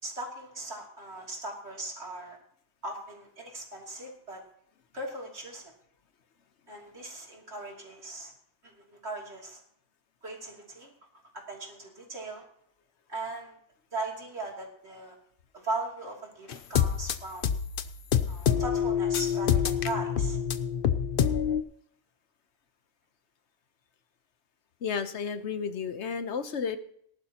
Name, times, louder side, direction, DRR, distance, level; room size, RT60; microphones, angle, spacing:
voice 1, 0.0-2.4 2.8-4.4 4.9-5.7 6.7-8.3 8.6-9.6 10.2-10.9 11.3-12.4 13.1-13.6 13.9-15.1 15.5-17.6 18.3-20.4, right 2 dB, 70° right, -1 dB, 3.2 m, -38 dB
sound 1, 16.5-21.6, left 8 dB, 60° left, 0.8 m, -26 dB
voice 2, 24.8-26.8, left 6 dB, 75° left, 10 dB, 1.2 m, -32 dB
19.0 x 11.5 x 2.9 m, 0.68 s
omnidirectional pair, 1.2 m